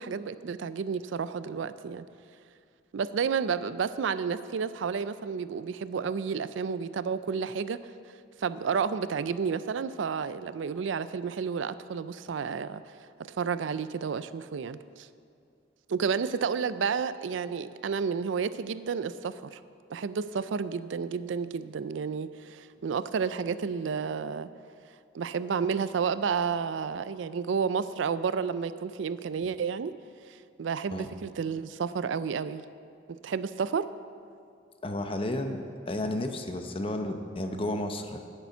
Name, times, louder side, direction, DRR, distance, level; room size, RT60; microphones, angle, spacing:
voice 1, 0.0-2.1 2.9-7.9 8.4-12.8 13.2-15.1 15.9-19.6 19.9-24.5 25.1-29.9 30.3-32.6 33.1-33.9, right 6 dB, 80° right, 14 dB, 0.4 m, -31 dB
voice 2, 34.8-38.2, left 1 dB, 30° left, 6 dB, 0.7 m, -32 dB
10.0 x 6.9 x 8.3 m, 2.4 s
head